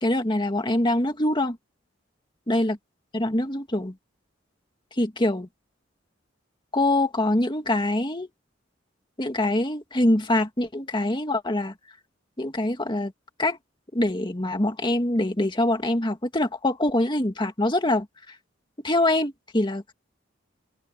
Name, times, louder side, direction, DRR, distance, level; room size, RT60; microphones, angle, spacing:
voice 1, 0.0-1.6 2.5-2.8 3.1-3.9 5.0-5.5 6.7-8.3 9.2-11.7 12.4-13.1 13.4-13.6 13.9-18.4 18.8-19.9, left 1 dB, 25° left, 2.0 m, -24 dB
open air
head